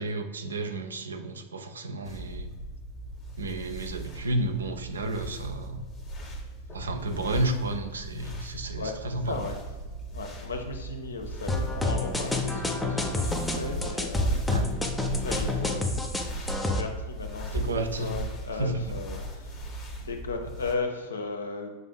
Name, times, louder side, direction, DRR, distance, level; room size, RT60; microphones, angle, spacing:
voice 1, 0.0-2.5 3.4-5.8 6.7-9.4 14.5-14.7 17.5-18.1 18.6-19.0, right 2 dB, 70° right, 6 dB, 0.4 m, -31 dB
sound 1, 2.1-20.7, right 1 dB, 25° left, 0.8 m, -37 dB
voice 2, 8.7-9.6 10.1-14.4 15.2-21.7, left 3 dB, 70° left, 4 dB, 0.5 m, -36 dB
sound 2, 11.5-16.8, left 2 dB, 5° left, 0.4 m, -29 dB
6.1 x 2.5 x 2.2 m, 1.3 s
figure-of-eight pair, 90°, 0 cm